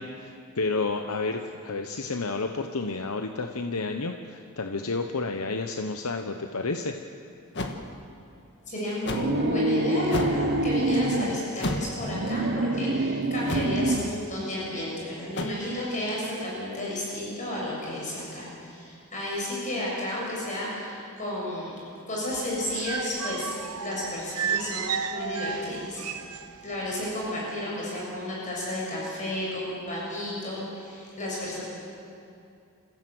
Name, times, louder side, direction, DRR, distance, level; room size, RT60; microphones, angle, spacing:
voice 1, 0.0-7.0, left 3 dB, 75° left, 5 dB, 1.0 m, -31 dB
sound 1, 7.5-7.8 9.1-9.3 10.0-10.4 11.6-12.0 13.5-13.8 15.3-15.5, left 1 dB, 50° left, 1.7 m, -30 dB
voice 2, 8.7-21.7 22.1-26.3 26.6-31.6, left 1 dB, 35° left, -5 dB, 6.4 m, -32 dB
sound 2, 9.1-11.4 12.0-14.2, right 2 dB, 50° right, 1.0 m, -26 dB
sound 3, 22.3-26.8 27.0-27.2, right 6 dB, 85° right, 0.9 m, -33 dB
28.0 x 15.5 x 7.8 m, 2.6 s
head